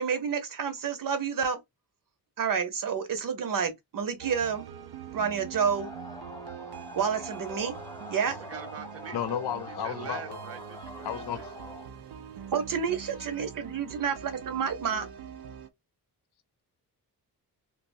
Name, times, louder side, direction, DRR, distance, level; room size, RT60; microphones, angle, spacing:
voice 1, 0.0-1.6 2.4-4.7 5.1-5.9 6.9-7.7 8.1-8.4 12.5-15.1, right 6 dB, 60° right, 0.9 m, -29 dB
sound 1, 4.2-15.7, right 9 dB, 85° right, 0.6 m, -44 dB
sound 2, 5.7-11.9, left 2 dB, 10° left, 0.3 m, -44 dB
voice 2, 8.5-9.4 9.7-11.5 13.2-13.6, right 6 dB, 40° right, 0.5 m, -43 dB
voice 3, 9.1-10.4 11.0-11.5, left 10 dB, 85° left, 0.7 m, -33 dB
3.4 x 2.9 x 2.6 m
wide cardioid pair, 180°, 38 cm